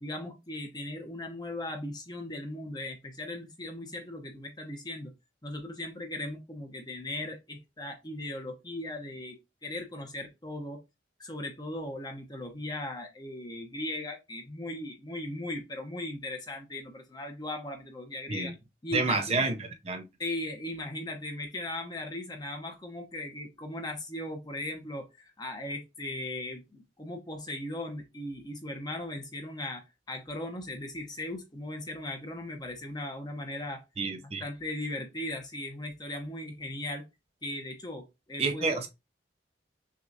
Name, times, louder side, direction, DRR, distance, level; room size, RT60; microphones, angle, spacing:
voice 1, 0.0-5.1 5.4-10.8 11.2-18.5 18.8-19.4 20.2-33.8 34.2-37.1 37.4-38.9, left 1 dB, 20° left, 0.9 m, -38 dB
voice 2, 18.9-20.1 34.0-34.4 38.4-38.9, right 3 dB, 35° right, 0.5 m, -29 dB
6.1 x 2.4 x 2.7 m
head